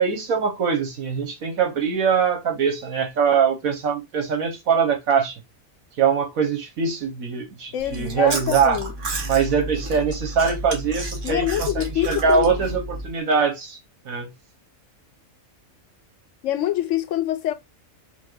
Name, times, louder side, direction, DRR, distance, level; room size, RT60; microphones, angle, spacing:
voice 1, 0.0-5.3 6.0-8.8 9.3-13.8 14.0-14.3, right 6 dB, 80° right, 1.6 m, -22 dB
voice 2, 7.7-8.9 11.2-12.5 16.4-17.5, left 12 dB, 70° left, 0.9 m, -25 dB
Chewing mastication, 7.8-13.1, right 2 dB, 60° right, 1.5 m, -31 dB
4.5 x 2.5 x 4.5 m
omnidirectional pair, 1.4 m